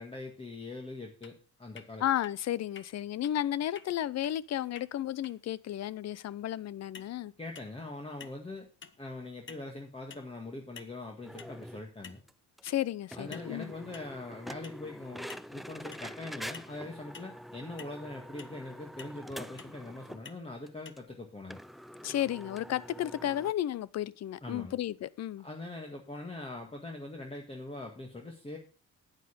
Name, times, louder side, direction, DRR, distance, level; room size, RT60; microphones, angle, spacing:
voice 1, 0.0-2.0 7.4-8.7 9.0-12.2 13.2-21.6 24.4-24.7 25.4-28.6, left 2 dB, 20° left, 1.8 m, -42 dB
sound 1, 1.2-1.3 1.8-1.9 2.2-2.3 2.8-2.9 3.2-3.3 3.8-3.9 4.2-4.3 4.8-4.9 5.2-5.3 6.9-7.1 7.6-7.9 8.2-8.5 8.8-9.0 9.5-9.7 10.1-10.3 10.8-11.0 11.4-11.6 12.0-12.3 12.7-12.8 13.3-13.5 13.9-14.1 14.6-14.8 15.3-15.5 15.9-16.1 16.5-16.7 17.1-17.4 17.8-17.9 18.4-18.6 19.0-19.2 19.6-19.8 20.3-20.4 20.9-21.0, left 6 dB, 40° left, 1.0 m, -49 dB
voice 2, 2.0-7.3 12.6-13.7 22.0-25.5, left 12 dB, 60° left, 0.6 m, -33 dB
sound 2, 11.2-11.8 12.3-12.4 12.6-12.7 13.1-20.3 20.7-20.8 21.0-21.1 21.5-23.5, equal, ahead, 0.4 m, -46 dB
9.2 x 9.1 x 5.1 m
cardioid pair, 90°, 30 cm